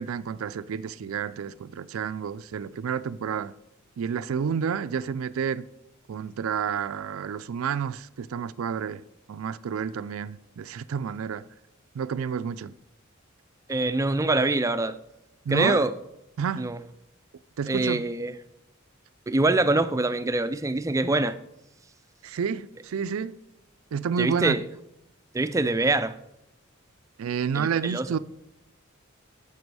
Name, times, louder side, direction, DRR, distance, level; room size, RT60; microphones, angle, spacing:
voice 1, 0.0-3.5 4.0-5.7 6.1-9.0 9.3-11.5 11.9-12.7 15.5-15.9 16.4-16.7 17.6-18.0 22.2-23.4 23.9-24.6 27.2-28.2, right 7 dB, 85° right, 0.4 m, -30 dB
voice 2, 13.7-15.0 15.5-15.9 16.6-16.8 17.7-18.3 19.3-21.4 24.2-24.6 25.3-26.1 27.5-28.1, right 2 dB, 15° right, 0.4 m, -24 dB
10.5 x 6.8 x 4.7 m
head